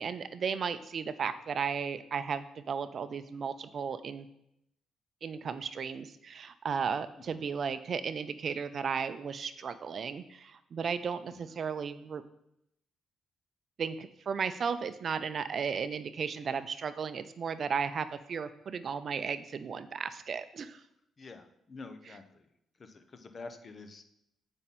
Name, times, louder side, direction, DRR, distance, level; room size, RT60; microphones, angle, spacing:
voice 1, 0.0-4.3 5.2-12.2 13.8-20.8, right 6 dB, 50° right, 13 dB, 0.5 m, -35 dB
voice 2, 21.2-22.5 22.8-24.1, left 3 dB, 40° left, 8 dB, 0.9 m, -48 dB
8.8 x 5.4 x 4.2 m, 0.78 s
cardioid pair, 90°, 0 cm